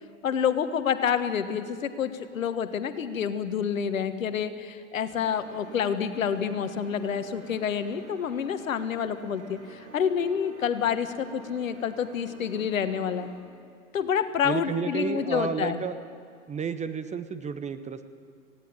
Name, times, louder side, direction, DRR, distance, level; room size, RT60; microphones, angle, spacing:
voice 1, 0.2-13.3 13.9-15.8, left 7 dB, 70° left, 11 dB, 1.5 m, -28 dB
sound 1, 5.1-13.4, right 3 dB, 70° right, 4.5 m, -49 dB
voice 2, 14.4-16.0 16.5-18.0, right 6 dB, 15° right, 11 dB, 1.0 m, -31 dB
19.0 x 16.5 x 9.3 m, 2.3 s
figure-of-eight pair, 90°, 41 cm